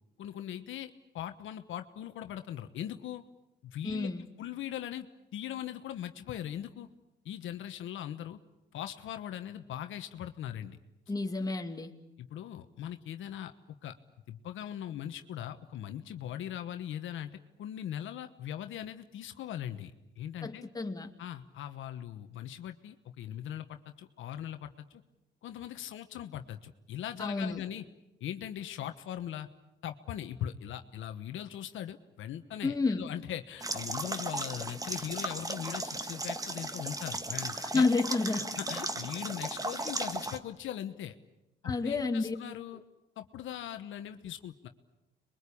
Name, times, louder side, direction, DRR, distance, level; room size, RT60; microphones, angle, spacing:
voice 1, 0.2-3.2 3.6-5.1 5.3-6.9 7.2-8.4 8.7-10.8 12.2-13.5 13.8-13.9 14.3-20.6 21.2-25.0 25.4-27.8 28.2-29.5 29.8-37.9 38.6-41.2 41.6-42.8 43.2-44.7, left 11 dB, 75° left, 8 dB, 1.2 m, -40 dB
voice 2, 3.8-4.2 11.1-11.9 20.4-21.1 27.2-27.6 32.6-33.0 37.6-38.5 41.6-42.3, left 3 dB, 20° left, 4 dB, 2.4 m, -30 dB
sound 1, 33.6-40.4, right 2 dB, 15° right, 1.6 m, -36 dB
27.0 x 22.5 x 8.6 m, 0.93 s
cardioid pair, 90°, 20 cm